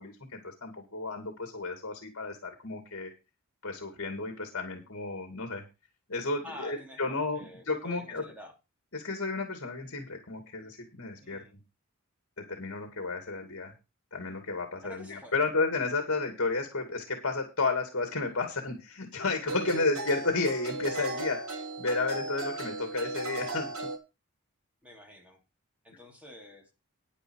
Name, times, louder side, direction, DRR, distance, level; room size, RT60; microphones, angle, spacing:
voice 1, 0.0-3.1 3.6-5.6 6.1-8.2 8.9-11.4 12.5-13.7 14.1-23.7, left 3 dB, 60° left, 5 dB, 2.4 m, -32 dB
voice 2, 6.4-8.5 11.2-11.5 14.8-15.3 19.6-19.8 24.8-25.4 25.8-26.7, left 1 dB, 5° right, 1 dB, 3.1 m, -48 dB
sound 1, 18.1-18.2 19.5-24.0, right 2 dB, 65° right, 3.1 m, -36 dB
10.0 x 10.0 x 4.8 m, 0.28 s
head